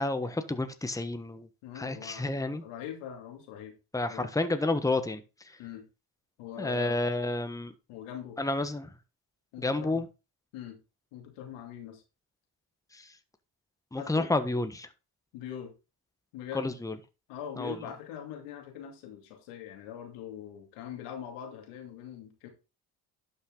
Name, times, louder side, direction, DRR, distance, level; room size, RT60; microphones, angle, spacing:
voice 1, 0.0-1.5 1.7-2.6 3.9-5.2 6.6-7.7 8.4-8.9 9.6-10.1 12.9-13.1 13.9-14.9 16.5-16.9 17.6-17.8, left 2 dB, 5° left, 9 dB, 1.2 m, -30 dB
voice 2, 1.6-3.7 4.1-4.3 5.6-5.8 6.4-7.0 7.9-8.4 9.5-10.0 10.5-10.8 11.1-12.0 14.0-14.3 15.3-15.7 16.3-16.7 17.3-22.5, left 9 dB, 85° left, 3 dB, 2.7 m, -42 dB
11.5 x 5.7 x 3.8 m, 0.30 s
supercardioid pair, 60°, 50 cm